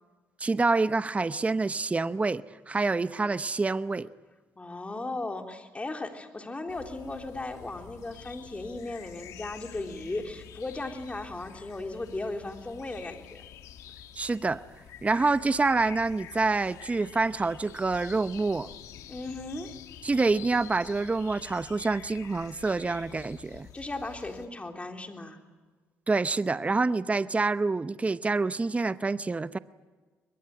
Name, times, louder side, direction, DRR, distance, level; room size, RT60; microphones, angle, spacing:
voice 1, 0.4-4.1 14.1-14.6 15.0-18.7 20.0-23.7 26.1-29.6, right 3 dB, 25° right, 14 dB, 0.8 m, -27 dB
voice 2, 4.6-13.4 19.1-19.7 23.7-25.4, left 2 dB, 25° left, 4 dB, 3.7 m, -36 dB
sound 1, 6.7-24.5, left 10 dB, 80° left, 1.8 m, -48 dB
22.5 x 22.0 x 9.7 m, 1.4 s
supercardioid pair, 70°, 6 cm